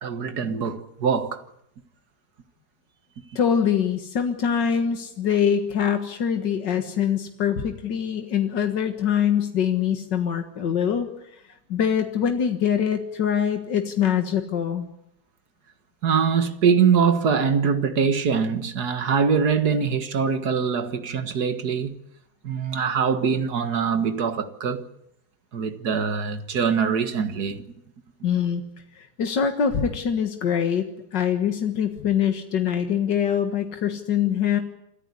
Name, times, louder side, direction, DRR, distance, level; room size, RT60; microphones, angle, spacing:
voice 1, 0.0-1.4 16.0-22.0 22.4-24.9 25.5-27.7, right 6 dB, 65° right, 2.1 m, -23 dB
voice 2, 3.4-11.1 11.7-14.9 28.2-28.6 29.0-34.6, left 8 dB, 90° left, 2.2 m, -24 dB
27.0 x 14.0 x 9.7 m
omnidirectional pair, 1.8 m